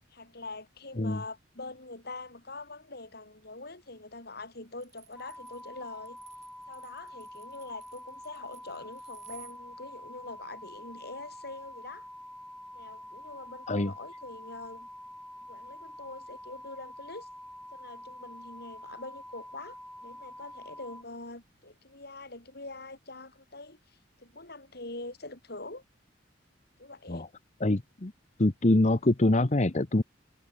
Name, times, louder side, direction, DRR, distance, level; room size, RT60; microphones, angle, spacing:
voice 1, 0.1-6.2 6.7-12.1 12.7-14.9 15.4-17.3 17.7-25.8 26.8-27.3, left 2 dB, 55° left, 8.0 m, -44 dB
sound 1, 4.8-9.6, right 11 dB, 40° right, 7.4 m, -55 dB
sound 2, 5.2-21.0, equal, ahead, 2.5 m, -47 dB
voice 2, 27.6-28.1 28.4-30.0, left 2 dB, 40° left, 1.0 m, -25 dB
head